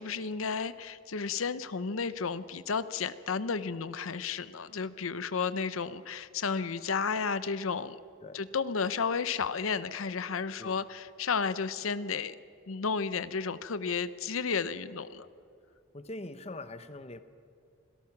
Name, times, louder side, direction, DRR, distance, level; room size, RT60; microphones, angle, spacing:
voice 1, 0.0-8.0 8.3-12.4 12.7-15.3, left 5 dB, 85° left, 14 dB, 0.7 m, -32 dB
voice 2, 15.9-17.2, left 2 dB, 30° left, 11 dB, 0.8 m, -43 dB
26.5 x 17.5 x 6.0 m, 2.3 s
head